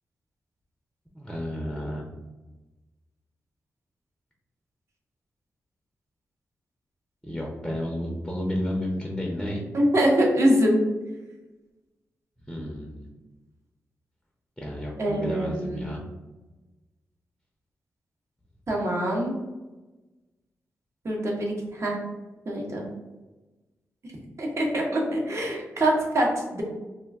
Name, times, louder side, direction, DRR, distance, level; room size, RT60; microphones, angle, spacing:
voice 1, 1.1-2.1 7.2-9.6 12.5-13.1 14.6-16.0, equal, 5° left, -1 dB, 0.6 m, -31 dB
voice 2, 9.7-10.8 15.0-15.8 18.7-19.3 21.0-22.0 22.5-22.9 24.4-26.6, right 1 dB, 50° right, -1 dB, 0.9 m, -24 dB
2.3 x 2.2 x 3.4 m, 1.1 s
supercardioid pair, 50°, 6 cm